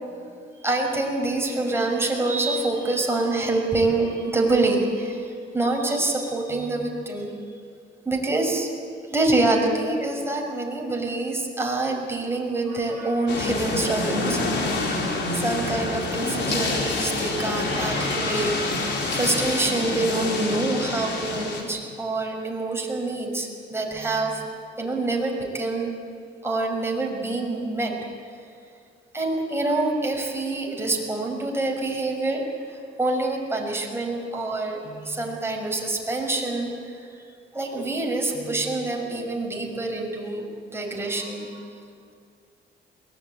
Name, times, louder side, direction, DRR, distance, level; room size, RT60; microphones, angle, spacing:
voice 1, 0.6-7.3 8.0-8.7 9.1-14.9 15.3-18.7 19.1-24.4 24.8-25.9 26.4-27.9 29.1-37.1 37.5-41.6, right 2 dB, 10° right, 0 dB, 5.9 m, -26 dB
sound 1, 13.3-21.6, left 2 dB, 65° left, 4.4 m, -27 dB
22.5 x 19.0 x 8.9 m, 2.2 s
cardioid pair, 90°, 20 cm